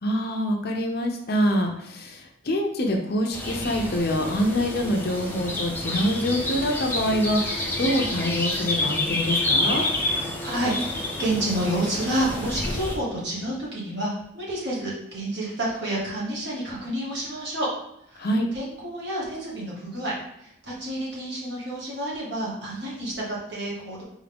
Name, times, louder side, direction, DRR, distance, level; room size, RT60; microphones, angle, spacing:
voice 1, 0.0-9.9 18.2-18.5, equal, 50° left, 3 dB, 0.6 m, -25 dB
sound 1, 3.3-13.0, left 2 dB, 10° left, 0.6 m, -28 dB
voice 2, 10.0-17.7 18.1-18.3 18.5-20.1 20.4-24.0, right 1 dB, 55° right, -5 dB, 1.7 m, -29 dB
4.2 x 3.6 x 3.5 m, 0.78 s
head